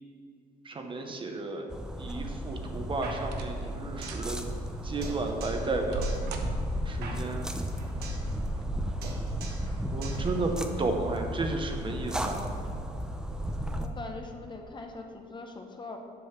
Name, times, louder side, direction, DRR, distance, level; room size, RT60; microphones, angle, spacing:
voice 1, 0.6-1.7 2.0-4.4 4.8-6.0 6.9-7.5 9.9-10.5 10.8-12.5, right 3 dB, 30° right, 4 dB, 0.8 m, -33 dB
sound 1, 1.7-13.9, equal, 5° right, 0.6 m, -34 dB
sound 2, 2.5-2.7 3.2-3.7 4.0-4.3 4.9-7.1 8.3-8.9 9.3-9.4 10.1-10.4 10.7-10.8, right 3 dB, 90° right, 0.8 m, -40 dB
sound 3, 3.0-4.3 4.6-4.7 5.0-5.7 6.0-8.3 8.5-8.8 9.0-9.7 10.0-11.0, right 3 dB, 70° right, 1.3 m, -40 dB
voice 2, 13.6-16.0, left 3 dB, 25° left, 3 dB, 0.8 m, -42 dB
7.7 x 5.4 x 5.9 m, 2.3 s
cardioid pair, 110°, 17 cm